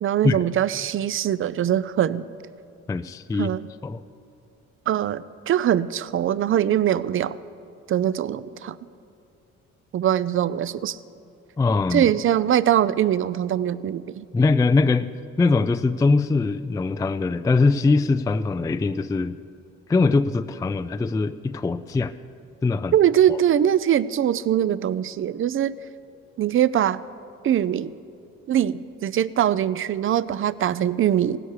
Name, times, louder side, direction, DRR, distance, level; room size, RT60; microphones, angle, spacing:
voice 1, 0.0-2.3 3.4-3.7 4.9-7.4 7.9-8.8 9.9-11.0 11.9-14.3 22.9-25.7 26.4-27.0 27.4-27.9 28.5-31.4, right 10 dB, 45° right, 17 dB, 0.5 m, -22 dB
voice 2, 2.9-3.5 3.8-4.0 11.6-12.1 14.3-15.1 15.4-19.4 19.9-22.1 22.6-22.9 23.3-23.4, left 3 dB, 10° left, 11 dB, 0.3 m, -22 dB
16.5 x 10.0 x 6.7 m, 2.6 s
cardioid pair, 90°, 30 cm